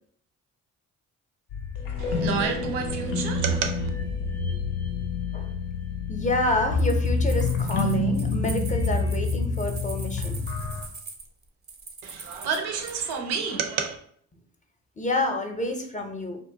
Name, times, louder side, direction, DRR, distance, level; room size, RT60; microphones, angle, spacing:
sound 1, 1.5-10.9, left 3 dB, 80° left, 0.5 m, -27 dB
voice 1, 2.0-3.9 12.0-14.0, right 6 dB, 80° right, 0.6 m, -30 dB
voice 2, 6.1-10.4 15.0-16.4, left 2 dB, 20° left, 0.6 m, -28 dB
sound 2, 6.8-13.2, right 4 dB, 25° right, 0.5 m, -43 dB
2.5 x 2.1 x 2.7 m
hypercardioid pair, 45°, 39 cm